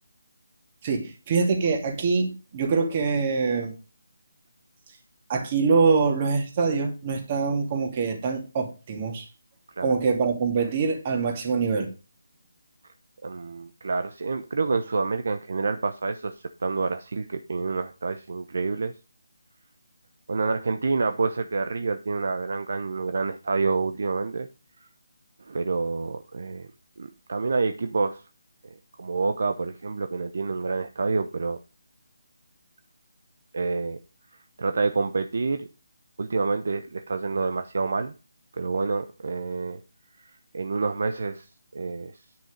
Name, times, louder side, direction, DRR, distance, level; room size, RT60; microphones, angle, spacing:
voice 1, 0.8-3.7 5.3-9.3 9.8-11.9, right 4 dB, 30° right, 2.6 m, -24 dB
voice 2, 13.2-16.3 16.6-18.9 20.3-24.5 24.8-24.9 25.4-26.7 27.0-28.2 28.6-31.6 33.5-34.0 34.3-35.7 36.2-38.1 38.5-39.8 40.2-41.5 41.7-42.2, right 4 dB, 60° right, 0.8 m, -28 dB
10.0 x 6.1 x 5.1 m
figure-of-eight pair, 155°, 0 cm